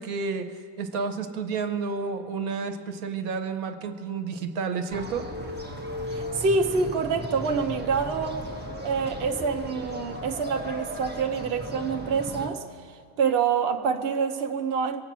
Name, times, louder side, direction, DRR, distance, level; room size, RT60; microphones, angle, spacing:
voice 1, 0.0-5.3, right 5 dB, 85° right, 8 dB, 1.4 m, -31 dB
sound 1, 4.9-12.5, equal, 5° right, 1.4 m, -36 dB
voice 2, 6.1-8.4 8.8-12.6 13.2-15.0, right 5 dB, 50° right, 5 dB, 0.9 m, -26 dB
23.5 x 8.3 x 6.1 m, 2.2 s
omnidirectional pair, 1.5 m